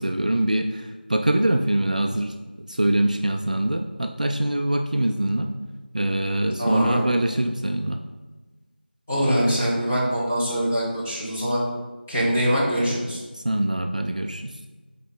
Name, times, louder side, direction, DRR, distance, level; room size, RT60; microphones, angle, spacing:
voice 1, 0.0-2.3 2.7-5.5 5.9-8.0 13.3-14.5, right 1 dB, 45° right, 5 dB, 0.3 m, -23 dB
voice 2, 6.6-7.0 9.1-11.6 12.1-13.2, equal, 10° left, -9 dB, 0.9 m, -23 dB
6.6 x 4.2 x 3.6 m, 1.2 s
figure-of-eight pair, 170°, 6 cm